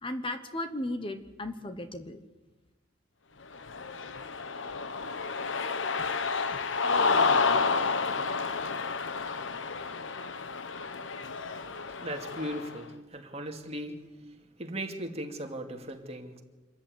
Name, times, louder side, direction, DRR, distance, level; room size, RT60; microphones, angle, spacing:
voice 1, 0.0-2.2, left 1 dB, 30° left, 9 dB, 1.2 m, -35 dB
Cheering, 3.5-12.8, left 4 dB, 80° left, 1.0 m, -30 dB
voice 2, 11.8-16.4, right 1 dB, 35° right, 4 dB, 2.5 m, -38 dB
26.0 x 14.0 x 9.5 m, 1.2 s
head